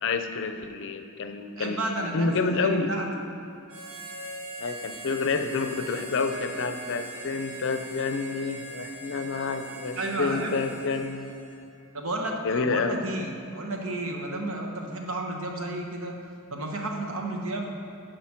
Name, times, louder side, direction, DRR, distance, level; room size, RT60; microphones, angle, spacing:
voice 1, 0.0-1.9 2.1-2.9 4.6-11.3 12.2-13.0, left 4 dB, 60° left, 7 dB, 0.6 m, -29 dB
voice 2, 1.6-3.1 10.0-10.5 11.9-16.2 16.5-17.7, right 2 dB, 65° right, 2 dB, 1.1 m, -32 dB
Harmonica, 3.7-11.7, right 1 dB, 85° right, 1.6 m, -41 dB
10.5 x 5.1 x 5.8 m, 2.5 s
head